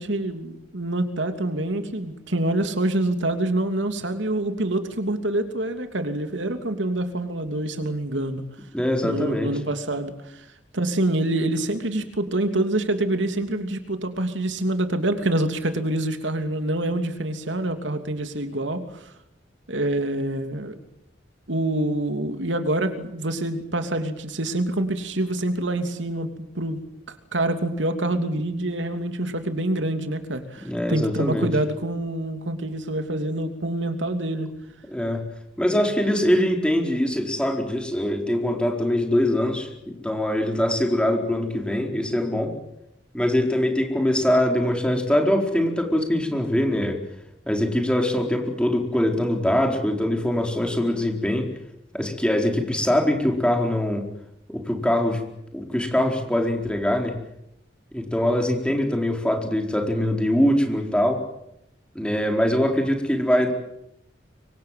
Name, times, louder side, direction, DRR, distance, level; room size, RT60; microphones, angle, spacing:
voice 1, 0.0-8.4 9.0-10.4 10.7-19.1 19.7-20.8 21.5-26.8 27.3-34.5 35.7-35.9, right 1 dB, 85° right, 7 dB, 3.0 m, -26 dB
voice 2, 8.7-9.5 30.6-31.5 34.9-35.2 35.6-42.5 43.1-47.0 47.5-51.5 51.9-54.1 54.5-55.2 55.5-57.2 57.9-61.2 61.9-63.5, left 1 dB, 5° left, 2 dB, 4.4 m, -23 dB
25.0 x 24.5 x 7.7 m, 0.81 s
head